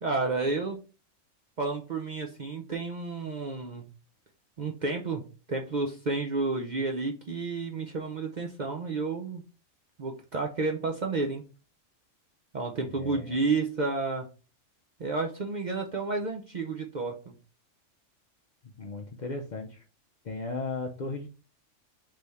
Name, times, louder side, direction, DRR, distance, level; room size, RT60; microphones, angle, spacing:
voice 1, 0.0-0.8 1.6-3.9 4.6-9.4 10.0-11.5 12.5-14.3 15.0-17.3, right 3 dB, 50° right, 2 dB, 0.6 m, -31 dB
voice 2, 12.8-13.4 18.6-19.8 20.2-21.3, left 3 dB, 50° left, 3 dB, 0.5 m, -36 dB
3.4 x 3.4 x 4.0 m, 0.35 s
omnidirectional pair, 1.3 m